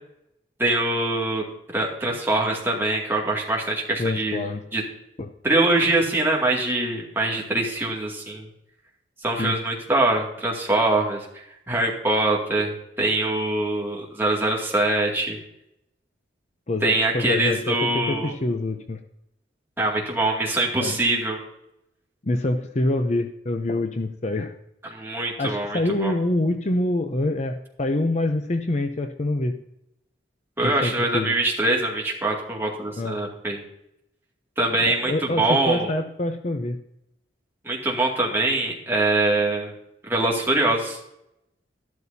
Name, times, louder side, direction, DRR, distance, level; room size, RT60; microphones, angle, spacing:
voice 1, 0.6-1.4 1.7-4.8 5.4-8.5 9.2-15.4 16.8-18.3 19.8-21.4 24.8-26.1 30.6-33.6 34.6-35.9 37.6-39.7 40.0-41.0, right 2 dB, 10° right, -2 dB, 2.3 m, -23 dB
voice 2, 4.0-4.6 5.2-5.3 9.4-9.6 16.7-19.0 20.8-20.9 22.2-24.5 25.4-29.6 30.6-31.4 33.0-33.2 34.8-36.8, left 2 dB, 35° left, 6 dB, 0.6 m, -26 dB
13.0 x 12.5 x 2.8 m, 0.81 s
head